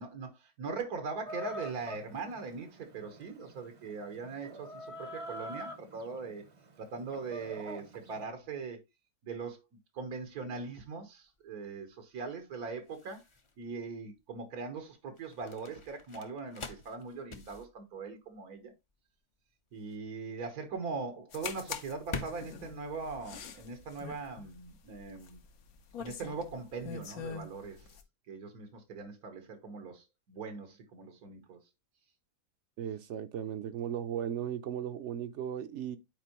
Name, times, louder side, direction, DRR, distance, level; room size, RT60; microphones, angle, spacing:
voice 1, 0.0-6.4 6.8-8.8 9.2-9.6 9.9-13.2 13.6-18.7 19.7-25.4 26.0-27.9 28.3-31.6, right 4 dB, 90° right, 1.7 m, -41 dB
Chicken rooster, 1.2-8.2, equal, 35° right, 0.5 m, -46 dB
sound 1, 10.3-24.0, left 3 dB, 40° left, 0.4 m, -48 dB
sound 2, 21.3-28.0, left 6 dB, 75° left, 1.3 m, -45 dB
voice 2, 32.8-36.0, right 9 dB, 65° right, 0.8 m, -36 dB
9.0 x 4.5 x 2.9 m
omnidirectional pair, 1.5 m